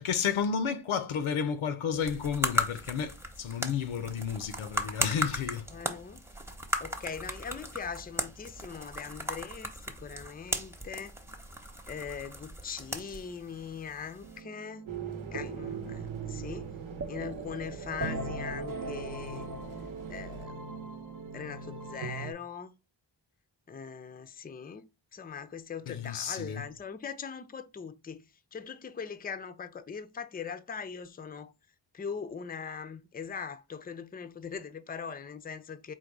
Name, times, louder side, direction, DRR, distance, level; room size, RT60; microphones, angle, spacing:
voice 1, 0.0-5.7 25.9-26.6, left 7 dB, 80° left, 0.7 m, -32 dB
sound 1, 1.9-14.4, equal, 5° right, 0.8 m, -37 dB
voice 2, 5.7-6.2 6.8-11.2 11.9-14.9 15.3-16.7 17.1-19.5 20.1-20.7 21.3-22.7 23.7-24.8 25.1-31.5 31.9-35.9, left 6 dB, 20° left, 0.5 m, -41 dB
sound 2, 14.2-22.3, right 3 dB, 45° right, 0.7 m, -40 dB
sound 3, 14.8-20.4, right 7 dB, 75° right, 0.9 m, -43 dB
3.9 x 2.2 x 4.5 m
cardioid pair, 55°, 48 cm